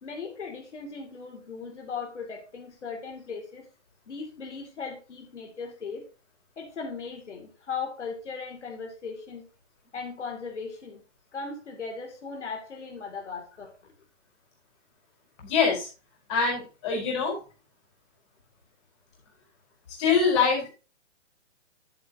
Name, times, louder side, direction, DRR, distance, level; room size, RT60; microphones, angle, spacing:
voice 1, 0.0-3.7 4.1-6.0 6.6-9.4 9.9-11.0 11.3-13.9, left 5 dB, 70° left, 2 dB, 2.5 m, -38 dB
voice 2, 15.4-15.9 16.3-17.4 20.0-20.7, left 5 dB, 25° left, -2 dB, 4.3 m, -24 dB
10.5 x 7.8 x 2.8 m, 0.33 s
hypercardioid pair, 170°, 36 cm